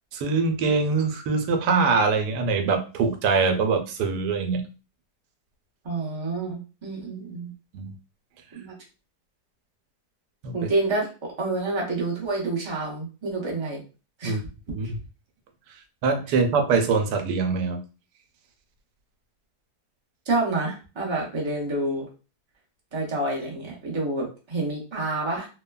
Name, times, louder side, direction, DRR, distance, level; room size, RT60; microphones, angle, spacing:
voice 1, 0.1-4.6 7.7-7.9 10.4-10.5 14.2-14.4 14.7-14.9 16.0-17.8, right 4 dB, 90° right, 6 dB, 1.2 m, -23 dB
voice 2, 5.8-7.5 8.5-8.7 10.5-13.8 14.2-14.4 20.3-22.1 22.9-25.5, right 2 dB, 40° right, -3 dB, 0.4 m, -28 dB
3.1 x 2.1 x 2.2 m, 0.33 s
omnidirectional pair, 1.8 m